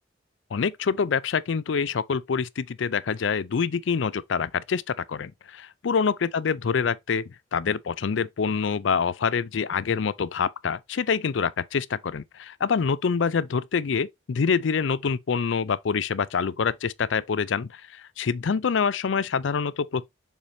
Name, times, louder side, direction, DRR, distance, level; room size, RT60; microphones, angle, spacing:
voice 1, 0.5-7.2 7.5-20.0, left 6 dB, 70° left, 0.5 m, -26 dB
7.1 x 5.0 x 2.6 m
head